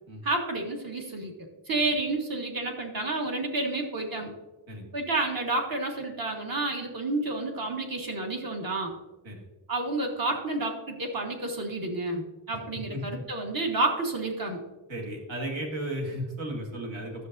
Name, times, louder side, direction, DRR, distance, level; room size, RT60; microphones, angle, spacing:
voice 1, 0.2-1.3 1.7-4.3 4.9-8.9 9.7-14.6, right 2 dB, 45° right, 2 dB, 1.4 m, -30 dB
voice 2, 14.9-17.3, right 1 dB, 75° right, -1 dB, 2.1 m, -34 dB
11.5 x 6.8 x 2.6 m, 1.2 s
wide cardioid pair, 175°, 47 cm